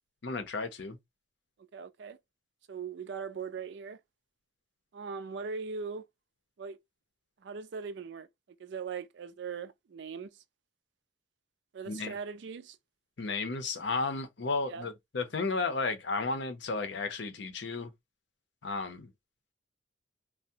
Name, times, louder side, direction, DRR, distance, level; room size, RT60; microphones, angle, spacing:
voice 1, 0.2-1.0 11.9-12.1 13.2-17.9 18.6-19.1, left 3 dB, 60° left, 0.6 m, -33 dB
voice 2, 1.7-2.2 2.7-4.0 4.9-6.0 6.6-6.8 7.4-8.3 8.6-10.4 11.7-12.8 14.6-14.9, right 5 dB, 60° right, 0.3 m, -40 dB
3.4 x 2.0 x 2.7 m
head